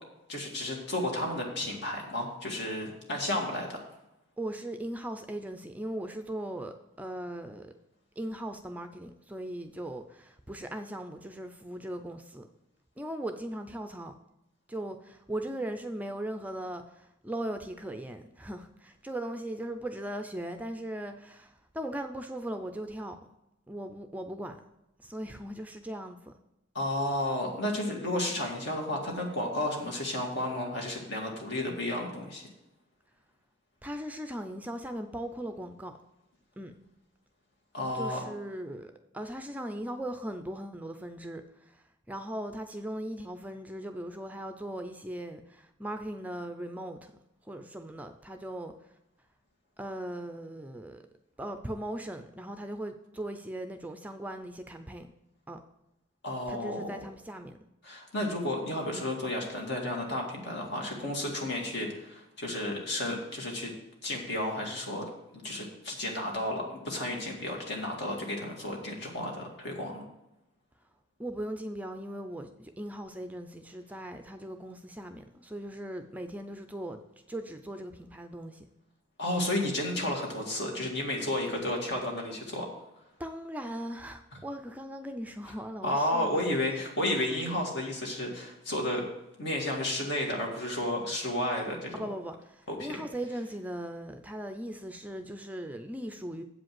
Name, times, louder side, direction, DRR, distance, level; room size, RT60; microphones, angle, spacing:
voice 1, 0.3-3.8 26.7-32.5 37.7-38.2 56.2-56.9 57.8-63.7 64.0-65.0 65.4-70.0 79.2-82.7 85.8-89.1 89.4-92.0 92.7-92.9, left 1 dB, 60° left, 0 dB, 2.2 m, -32 dB
voice 2, 4.4-7.7 8.2-12.5 13.0-14.1 14.7-23.2 23.7-24.6 25.0-26.3 33.8-35.9 36.6-36.7 37.9-47.1 47.4-48.9 49.8-51.0 51.4-55.1 55.5-55.6 56.5-57.6 71.2-77.0 77.3-78.7 83.2-86.5 91.9-96.4, right 1 dB, 10° right, 7 dB, 0.4 m, -39 dB
8.1 x 5.2 x 7.6 m, 0.89 s
head